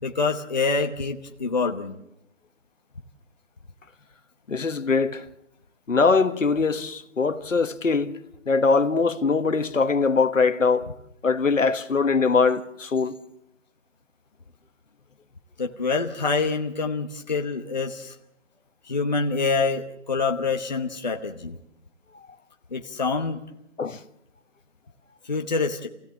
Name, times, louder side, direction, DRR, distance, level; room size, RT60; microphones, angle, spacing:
voice 1, 0.0-2.0 15.6-18.1 18.8-21.6 22.7-23.4 25.2-25.9, left 4 dB, 35° left, 1.0 m, -26 dB
voice 2, 4.5-5.2 5.9-8.2 8.5-10.9 11.2-13.1 23.8-24.0, left 4 dB, 75° left, 1.5 m, -22 dB
27.5 x 16.5 x 7.4 m
figure-of-eight pair, 175°, 39 cm